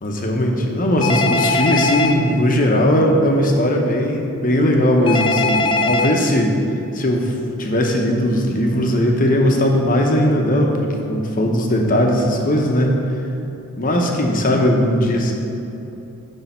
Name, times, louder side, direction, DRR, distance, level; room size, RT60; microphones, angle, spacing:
voice 1, 0.0-6.6 6.9-13.0 13.8-15.3, equal, 40° left, 1 dB, 0.8 m, -18 dB
Telephone, 1.0-2.1 5.1-6.1, left 3 dB, 20° left, 0.3 m, -20 dB
10.0 x 3.4 x 5.5 m, 2.9 s
head